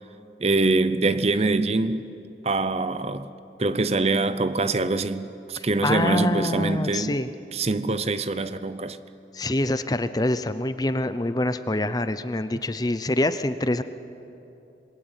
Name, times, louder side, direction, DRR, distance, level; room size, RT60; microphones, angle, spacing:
voice 1, 0.4-2.1 2.4-3.3 3.6-7.2 7.5-9.0, right 3 dB, 35° right, 0.7 m, -24 dB
voice 2, 5.8-7.3 9.3-13.8, left 1 dB, 20° left, 0.6 m, -25 dB
26.5 x 21.0 x 9.1 m
head